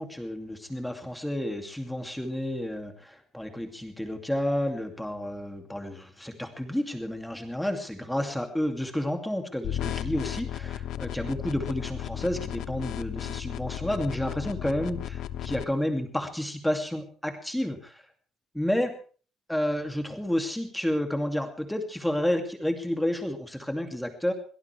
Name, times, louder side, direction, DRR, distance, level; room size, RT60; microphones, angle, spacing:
voice 1, 0.0-18.0 18.5-18.9 19.5-24.3, left 1 dB, 5° left, 5 dB, 2.5 m, -30 dB
sound 1, 9.6-15.6, left 11 dB, 60° left, 0.9 m, -34 dB
23.0 x 18.0 x 3.4 m, 0.41 s
cardioid pair, 165°, 0 cm